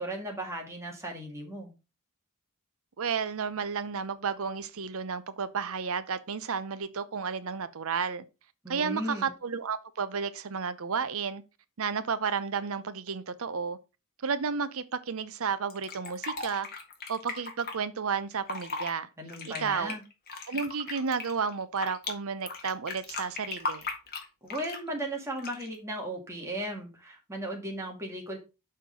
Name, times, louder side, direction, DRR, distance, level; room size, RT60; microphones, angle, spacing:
voice 1, 0.0-1.7 8.6-9.3 19.2-20.0 24.4-28.4, right 1 dB, 15° right, 2.1 m, -36 dB
voice 2, 3.0-8.2 8.7-11.4 11.8-13.8 14.2-16.7 17.1-19.1 19.5-20.0 20.5-23.9, right 5 dB, 70° right, 0.7 m, -32 dB
Fill (with liquid), 15.7-17.7 18.3-18.9 19.3-22.1 22.5-24.9 25.4-25.8, left 4 dB, 45° left, 1.7 m, -37 dB
6.5 x 4.4 x 5.1 m
head